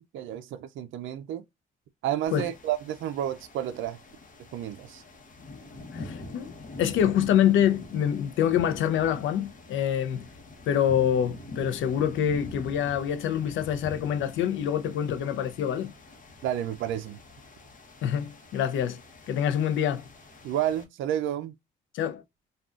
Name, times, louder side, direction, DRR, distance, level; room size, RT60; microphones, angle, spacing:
voice 1, 0.1-1.4 2.0-4.0 4.5-5.0 16.4-17.2 20.4-21.5, right 11 dB, 80° right, 0.4 m, -30 dB
sound 1, 2.3-20.8, left 2 dB, 40° left, 0.9 m, -45 dB
voice 2, 5.9-6.5 6.8-10.3 10.7-15.9 18.0-19.0 19.3-20.0 21.9-22.2, left 9 dB, 80° left, 0.5 m, -26 dB
3.6 x 2.3 x 2.4 m
cardioid pair, 90°, 20 cm